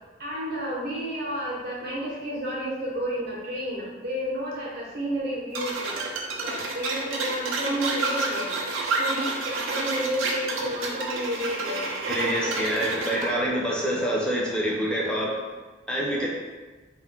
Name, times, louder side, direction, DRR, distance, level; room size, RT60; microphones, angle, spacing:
voice 1, 0.2-6.0 6.4-8.5 9.0-11.8 12.3-12.8 13.0-13.5, equal, 50° right, -4 dB, 0.7 m, -31 dB
sound 1, 5.5-13.3, right 3 dB, 85° right, 0.4 m, -29 dB
voice 2, 12.1-15.3 15.9-16.3, equal, 5° left, -4 dB, 0.4 m, -26 dB
2.2 x 2.1 x 3.6 m, 1.3 s
head